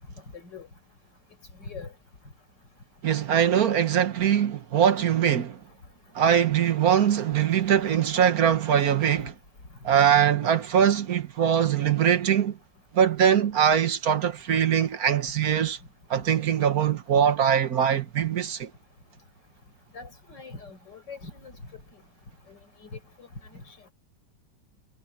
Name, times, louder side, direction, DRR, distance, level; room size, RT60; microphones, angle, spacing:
voice 1, 0.3-0.7 1.6-1.9 19.9-21.5 22.5-22.6 22.9-23.0, left 4 dB, 85° left, 5.8 m, -41 dB
voice 2, 3.0-5.6 6.1-9.3 9.8-12.6 12.9-15.8 16.1-18.7, right 8 dB, 60° right, 1.6 m, -22 dB
omnidirectional pair, 1.8 m